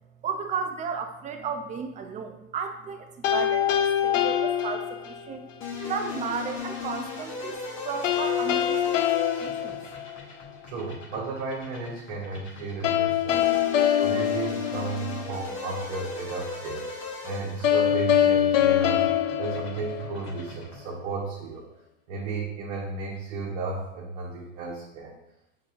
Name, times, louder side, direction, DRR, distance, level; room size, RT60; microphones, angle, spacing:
voice 1, 0.2-5.5 5.8-7.6 7.8-9.0 9.4-9.8, right 6 dB, 20° right, 6 dB, 0.4 m, -34 dB
sound 1, 3.2-5.4 8.0-10.5 12.8-15.4 17.6-20.5, left 10 dB, 80° left, 0.5 m, -24 dB
sound 2, 5.6-21.0, left 4 dB, 30° left, 1.3 m, -38 dB
voice 2, 10.6-13.6 14.0-16.9 17.2-19.0 19.4-21.6 22.1-25.1, right 3 dB, 60° right, -4 dB, 1.1 m, -33 dB
5.4 x 3.9 x 2.5 m, 0.91 s
hypercardioid pair, 100°, 38 cm